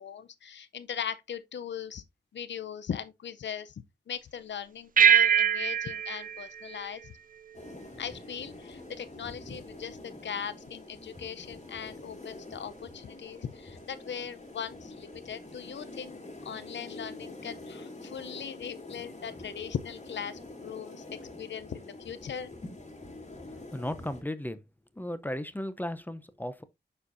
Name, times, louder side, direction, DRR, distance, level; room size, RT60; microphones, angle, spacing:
voice 1, 0.0-2.0 2.3-7.1 8.0-21.0 21.4-22.5, left 8 dB, 80° left, 0.6 m, -39 dB
sound 1, 5.0-7.7, right 8 dB, 50° right, 0.4 m, -24 dB
sound 2, 7.5-24.2, left 2 dB, 40° left, 2.5 m, -46 dB
voice 2, 23.5-24.6 24.9-26.6, left 1 dB, 10° left, 0.6 m, -35 dB
9.4 x 4.4 x 2.6 m
wide cardioid pair, 80°, 18 cm